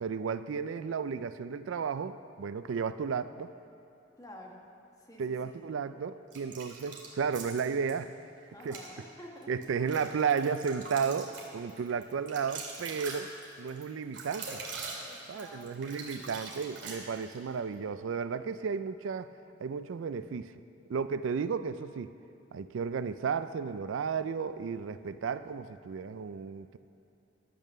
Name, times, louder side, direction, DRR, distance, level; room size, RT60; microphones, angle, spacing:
voice 1, 0.0-3.5 5.2-8.1 8.4-8.8 9.5-13.3 13.6-14.6 15.3-19.3 19.6-20.5 20.9-22.1 22.5-26.8, right 6 dB, 80° right, 13 dB, 0.4 m, -33 dB
voice 2, 4.2-4.6 5.0-5.7 8.5-9.8 15.1-16.4, left 1 dB, 20° left, -1 dB, 1.4 m, -50 dB
sound 1, 6.3-7.9 8.6-8.9 9.4-17.4, right 4 dB, 65° right, 2.2 m, -43 dB
12.0 x 8.6 x 6.6 m, 2.8 s
head